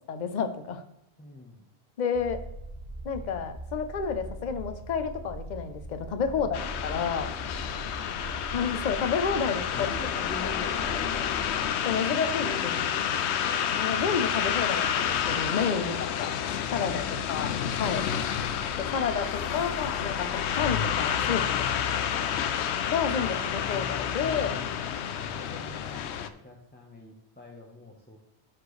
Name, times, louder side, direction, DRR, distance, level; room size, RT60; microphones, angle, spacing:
voice 1, 0.1-0.8 2.0-2.4 3.0-7.3 8.5-9.9 10.4-10.5 11.8-13.0 13.8-16.3 16.7-17.0 17.3-17.5 17.8-18.0 18.8-20.3 20.5-21.6 22.9-24.6, left 6 dB, 45° left, 8 dB, 0.8 m, -30 dB
voice 2, 1.2-1.7 6.3-6.8 9.4-11.5 16.8-18.3 20.1-20.3 24.7-28.2, left 1 dB, 10° left, -2 dB, 0.9 m, -46 dB
sound 1, 2.1-11.7, right 1 dB, 20° right, 2.0 m, -41 dB
sound 2, 6.5-26.3, left 8 dB, 80° left, 0.9 m, -29 dB
sound 3, 14.9-21.8, right 1 dB, 50° right, 2.2 m, -51 dB
13.0 x 4.4 x 3.2 m, 0.85 s
omnidirectional pair, 1.1 m